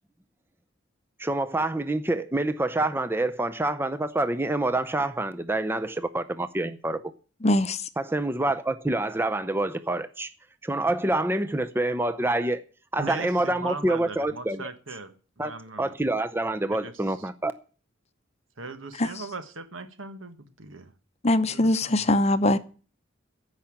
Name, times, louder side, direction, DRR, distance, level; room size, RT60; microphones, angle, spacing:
voice 1, 1.2-7.0 8.0-10.3 10.6-12.6 12.9-14.6 15.4-15.5 15.8-17.5, right 2 dB, 10° right, 0.5 m, -27 dB
voice 2, 7.4-7.9 19.0-19.1 21.2-22.6, left 1 dB, 30° left, 0.7 m, -22 dB
voice 3, 13.0-15.9 16.7-17.3 18.6-20.9 21.5-22.0, right 3 dB, 75° right, 1.6 m, -39 dB
14.5 x 5.8 x 8.6 m
head